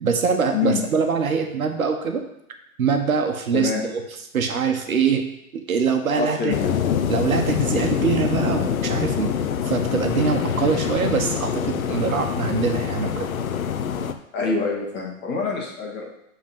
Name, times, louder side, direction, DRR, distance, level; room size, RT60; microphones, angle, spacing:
voice 1, 0.0-2.2 2.8-3.9 4.3-5.2 5.7-6.6 7.1-9.3 9.6-13.3, right 6 dB, 85° right, 5 dB, 1.3 m, -23 dB
voice 2, 3.5-3.9 6.1-6.6 14.3-16.0, left 5 dB, 25° left, -2 dB, 2.0 m, -25 dB
sound 1, 6.5-14.1, left 8 dB, 80° left, 0.8 m, -25 dB
7.5 x 4.1 x 5.6 m, 0.81 s
hypercardioid pair, 135°, 41 cm